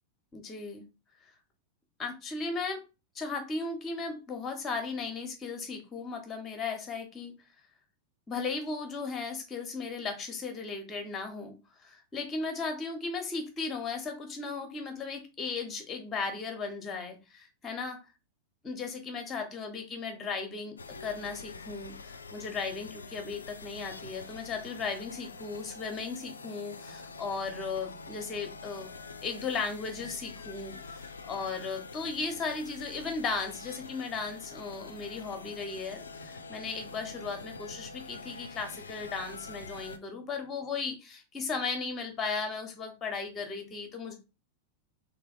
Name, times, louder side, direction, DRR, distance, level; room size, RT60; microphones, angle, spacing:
voice 1, 0.3-0.8 2.0-2.8 3.1-7.3 8.3-11.5 11.8-18.0 18.6-28.9 29.2-44.1, left 4 dB, 20° left, 5 dB, 1.0 m, -36 dB
sound 1, 20.8-40.0, left 4 dB, 75° left, 0.3 m, -45 dB
3.3 x 3.3 x 2.4 m, 0.29 s
figure-of-eight pair, 90°, 0 cm